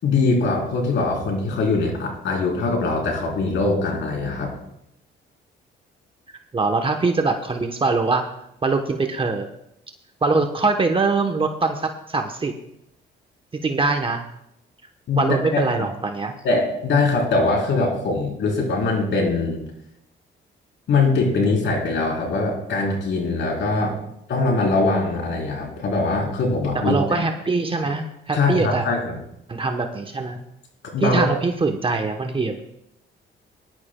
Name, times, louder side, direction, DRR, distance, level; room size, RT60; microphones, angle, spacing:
voice 1, 0.0-4.6 15.1-15.6 16.4-19.6 20.9-23.9 24.3-27.2 28.3-29.2 30.8-31.3, left 3 dB, 70° left, 0 dB, 3.7 m, -22 dB
voice 2, 6.5-8.2 8.6-9.5 10.2-12.5 13.6-14.2 15.2-16.3 23.7-24.0 26.7-28.9 29.5-30.4 31.0-32.6, right 3 dB, 25° right, 5 dB, 1.0 m, -23 dB
19.0 x 11.0 x 2.2 m, 0.79 s
cardioid pair, 90°, 20 cm